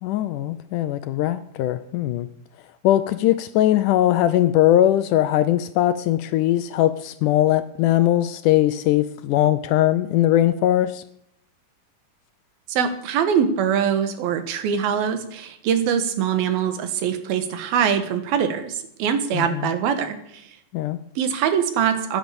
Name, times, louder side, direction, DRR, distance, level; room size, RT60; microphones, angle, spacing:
voice 1, 0.0-2.3 2.8-11.0 19.3-19.7 20.7-21.0, left 13 dB, 75° left, 1.9 m, -20 dB
voice 2, 12.7-20.4 21.2-22.2, right 8 dB, 90° right, 3.3 m, -23 dB
15.5 x 10.0 x 7.0 m
omnidirectional pair, 4.1 m